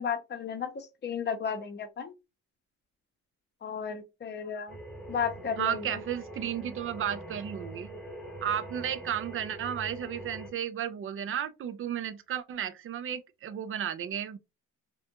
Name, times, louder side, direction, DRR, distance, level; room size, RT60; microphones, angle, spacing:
voice 1, 0.0-2.1 3.6-4.8 5.1-6.0, left 7 dB, 35° left, 0.7 m, -34 dB
sound 1, 4.7-10.5, right 1 dB, ahead, 0.9 m, -43 dB
voice 2, 5.6-8.0 8.4-14.4, right 9 dB, 45° right, 0.5 m, -33 dB
2.5 x 2.2 x 2.8 m
cardioid pair, 90°, 30 cm